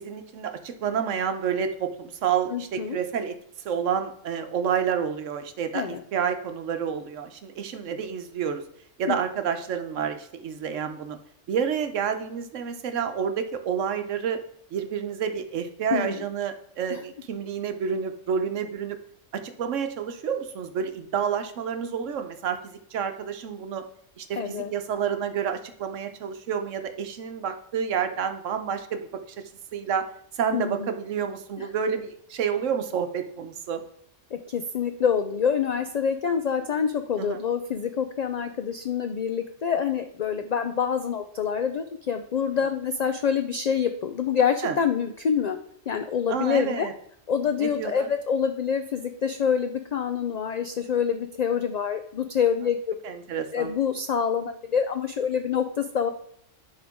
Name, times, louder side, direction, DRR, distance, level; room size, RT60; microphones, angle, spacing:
voice 1, 0.0-3.4 3.6-8.6 9.0-11.2 11.5-14.4 14.7-19.0 19.3-23.8 24.2-29.4 29.7-30.1 30.4-33.8 37.2-37.4 44.6-44.8 46.3-46.9 47.6-48.1 53.0-53.7, right 7 dB, 80° right, 7 dB, 1.1 m, -29 dB
voice 2, 2.5-3.0 5.7-6.0 9.1-9.2 15.9-16.2 16.9-17.0 24.3-24.7 30.5-30.9 31.6-31.7 34.3-45.6 45.9-46.9 47.3-52.9 53.5-56.1, left 7 dB, 70° left, 7 dB, 0.4 m, -26 dB
10.5 x 3.6 x 3.6 m, 0.69 s
omnidirectional pair, 1.3 m